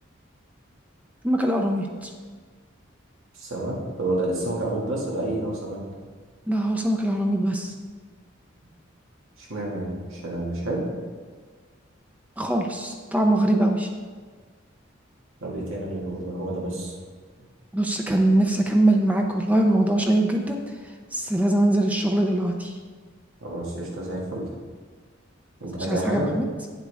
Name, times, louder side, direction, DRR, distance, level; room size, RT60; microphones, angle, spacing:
voice 1, 1.2-2.1 6.5-7.7 12.4-13.9 17.7-20.6 21.1-22.8 25.9-26.5, right 1 dB, 5° right, 2 dB, 0.5 m, -22 dB
voice 2, 3.3-5.8 9.4-10.9 15.4-16.9 23.4-24.4 25.6-26.3, right 1 dB, 80° right, -3 dB, 2.0 m, -29 dB
9.4 x 7.4 x 3.5 m, 1.5 s
head